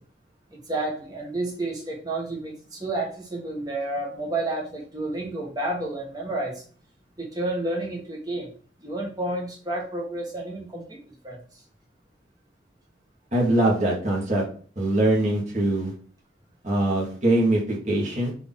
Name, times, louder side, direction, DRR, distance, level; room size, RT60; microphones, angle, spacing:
voice 1, 0.5-6.6 7.2-8.5 8.8-11.0 11.2-11.4, right 2 dB, 20° right, -2 dB, 1.1 m, -30 dB
voice 2, 13.3-14.4 14.8-15.9 16.6-18.3, right 1 dB, 40° right, -3 dB, 1.4 m, -22 dB
4.0 x 2.9 x 3.6 m, 0.43 s
head